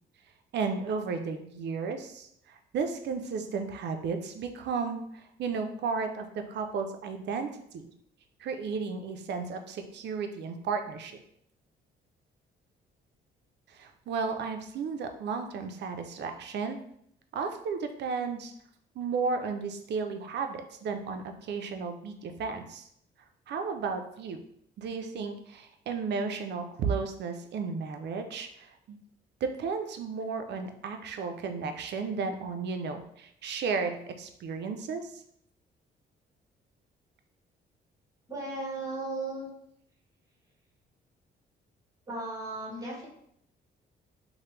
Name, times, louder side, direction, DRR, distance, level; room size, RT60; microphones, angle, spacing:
voice 1, 0.5-7.9 8.4-11.2 13.7-16.8 17.3-18.5 19.0-22.9 23.5-24.4 24.8-29.0 29.4-35.2, right 5 dB, 60° right, 6 dB, 0.4 m, -34 dB
voice 2, 38.3-39.5 42.1-43.1, right 2 dB, 20° right, -3 dB, 1.1 m, -36 dB
3.0 x 2.1 x 3.1 m, 0.72 s
cardioid pair, 90°, 20 cm